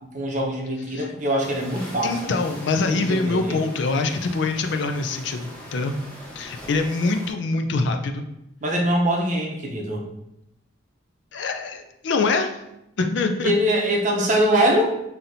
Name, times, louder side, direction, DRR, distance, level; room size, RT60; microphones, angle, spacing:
voice 1, 0.1-2.3 2.9-3.6 8.6-10.0 13.4-14.9, right 1 dB, 40° right, 0 dB, 0.6 m, -23 dB
sound 1, 1.4-7.3, equal, 5° left, 0.8 m, -41 dB
voice 2, 2.0-5.9 6.4-8.3 11.3-12.6 13.0-13.5, left 3 dB, 60° left, 6 dB, 0.4 m, -24 dB
5.7 x 2.8 x 2.6 m, 0.85 s
head